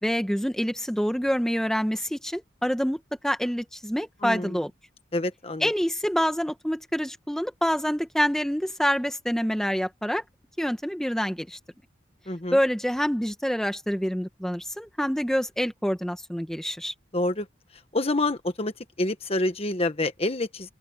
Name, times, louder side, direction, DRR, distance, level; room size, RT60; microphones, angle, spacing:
voice 1, 0.0-4.7 5.6-10.2 10.6-11.6 12.5-16.9, equal, 5° left, 1.3 m, -26 dB
voice 2, 4.2-4.6 5.1-5.7 12.3-12.6 17.1-17.5 17.9-18.7 19.0-20.7, left 2 dB, 30° left, 1.4 m, -27 dB
open air
head